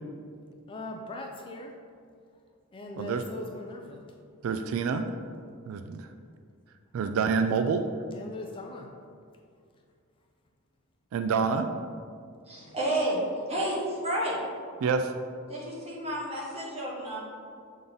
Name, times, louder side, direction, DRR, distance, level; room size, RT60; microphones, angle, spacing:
voice 1, 0.7-1.8 2.7-4.0 8.1-8.9, left 2 dB, 25° left, 2 dB, 0.3 m, -40 dB
voice 2, 4.4-5.1 5.7-6.1 6.9-7.9 11.1-11.7 14.8-15.1, right 5 dB, 80° right, 8 dB, 0.3 m, -27 dB
voice 3, 12.5-13.2 13.5-14.4 15.5-17.2, right 1 dB, 30° right, -5 dB, 1.4 m, -31 dB
6.9 x 3.6 x 3.9 m, 2.3 s
head